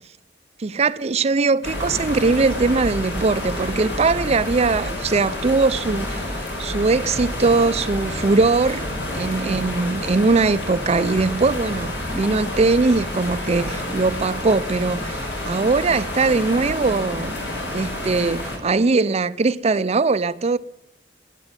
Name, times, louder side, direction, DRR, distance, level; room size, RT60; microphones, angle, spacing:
voice 1, 0.6-8.9 9.1-17.3 17.7-20.6, right 3 dB, 35° right, 0.5 m, -21 dB
sound 1, 1.6-18.6, left 1 dB, 75° left, 4.7 m, -29 dB
12.0 x 9.9 x 9.8 m
head